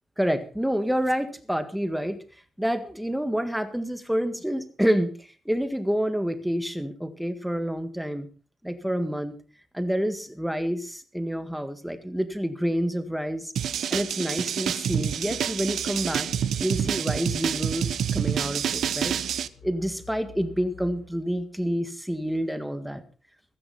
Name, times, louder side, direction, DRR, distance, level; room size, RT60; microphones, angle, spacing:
voice 1, 0.2-2.2 2.6-8.3 8.6-9.3 9.7-13.5 13.9-16.3 16.6-19.1 19.6-23.0, equal, ahead, 9 dB, 1.7 m, -28 dB
sound 1, 13.6-19.5, right 9 dB, 75° right, 0.8 m, -27 dB
sound 2, 14.9-21.1, left 6 dB, 70° left, 2.9 m, -47 dB
15.5 x 14.5 x 4.2 m, 0.38 s
cardioid pair, 130°, 0 cm